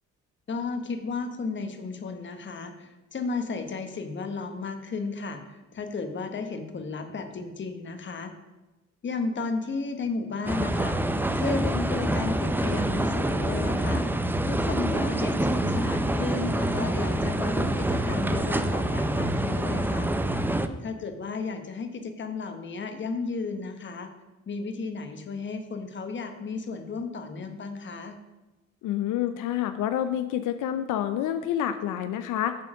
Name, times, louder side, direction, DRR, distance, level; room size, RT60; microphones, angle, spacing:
voice 1, 0.5-8.3 9.0-11.0 11.3-14.0 14.4-20.1 20.8-24.1 24.5-28.2, left 4 dB, 40° left, 7 dB, 1.0 m, -34 dB
sound 1, 10.5-20.7, right 1 dB, 5° right, 0.4 m, -26 dB
voice 2, 28.8-32.6, left 11 dB, 85° left, 10 dB, 0.5 m, -28 dB
7.3 x 4.4 x 6.2 m, 1.1 s
cardioid pair, 90°, 30 cm